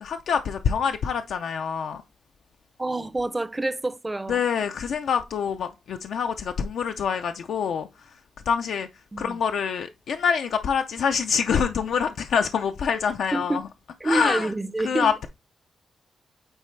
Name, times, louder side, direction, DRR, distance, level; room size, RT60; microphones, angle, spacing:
voice 1, 0.0-2.0 4.3-7.9 8.5-8.9 9.2-13.6 14.0-14.5 14.8-15.3, left 6 dB, 85° left, 0.5 m, -25 dB
voice 2, 2.8-4.4 9.1-9.4 13.3-13.6 14.0-15.1, right 2 dB, 15° right, 0.4 m, -27 dB
8.8 x 4.1 x 3.2 m
wide cardioid pair, 120°, 0 cm